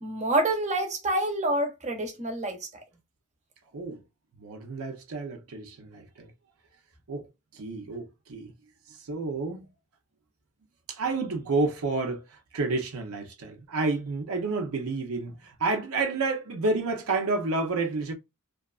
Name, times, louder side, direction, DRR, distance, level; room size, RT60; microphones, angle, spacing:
voice 1, 0.0-2.7, right 1 dB, 35° right, 0.7 m, -27 dB
voice 2, 4.4-6.3 7.1-7.3 7.5-8.5 9.1-9.7 10.9-18.1, right 3 dB, 75° right, 0.6 m, -30 dB
2.8 x 2.3 x 2.3 m
head